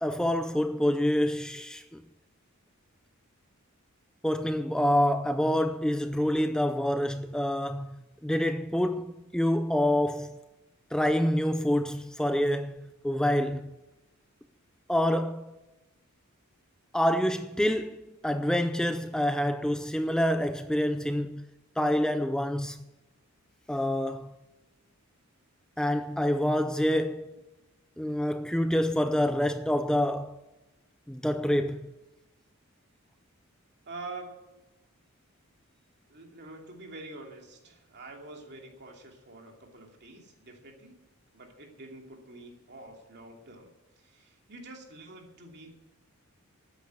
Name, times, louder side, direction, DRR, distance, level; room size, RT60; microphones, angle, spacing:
voice 1, 0.0-2.0 4.2-10.4 10.9-13.7 14.9-15.5 16.9-21.5 21.8-22.8 23.7-24.3 25.8-27.3 28.0-30.4 31.1-31.9, equal, 5° left, 0.4 m, -27 dB
voice 2, 33.8-34.5 36.1-41.0 41.3-43.7 44.0-45.7, right 2 dB, 50° right, 2.7 m, -46 dB
13.0 x 9.6 x 8.0 m
head